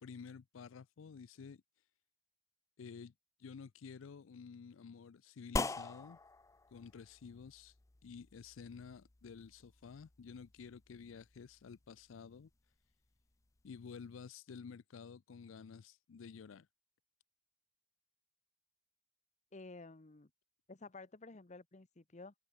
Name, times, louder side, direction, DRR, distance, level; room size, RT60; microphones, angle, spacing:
voice 1, 0.0-1.6 2.8-3.1 3.4-6.2 6.7-7.8 8.0-12.5 13.6-16.7, left 6 dB, 80° left, 0.4 m, -51 dB
sound 1, 5.6-14.3, left 3 dB, 15° left, 0.4 m, -46 dB
voice 2, 19.5-20.3 20.7-22.3, left 3 dB, 35° left, 0.9 m, -52 dB
head